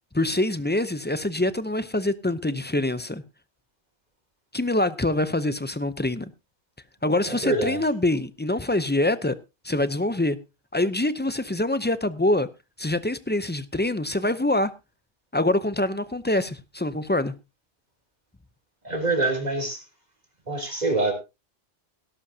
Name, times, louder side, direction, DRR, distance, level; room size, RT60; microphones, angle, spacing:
voice 1, 0.1-3.2 4.5-6.3 7.0-9.3 9.6-10.4 10.7-12.5 12.8-14.7 15.3-17.3, left 1 dB, 15° left, 0.4 m, -25 dB
voice 2, 7.3-7.8 18.8-19.8 20.5-21.1, right 2 dB, 35° right, 3.4 m, -25 dB
18.0 x 11.5 x 2.8 m
omnidirectional pair, 1.2 m